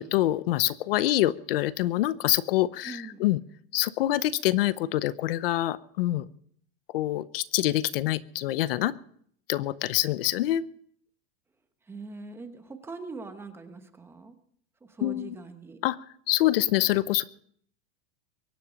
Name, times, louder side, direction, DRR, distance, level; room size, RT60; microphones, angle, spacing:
voice 1, 0.0-3.4 3.7-6.3 6.9-8.9 9.5-10.6 15.0-15.4 15.8-16.0 16.3-17.2, left 15 dB, 70° left, 17 dB, 0.8 m, -25 dB
voice 2, 2.8-3.3 11.9-14.4 14.8-15.8, right 4 dB, 10° right, 7 dB, 1.0 m, -42 dB
23.0 x 10.5 x 5.1 m, 0.62 s
supercardioid pair, 170°, 30 cm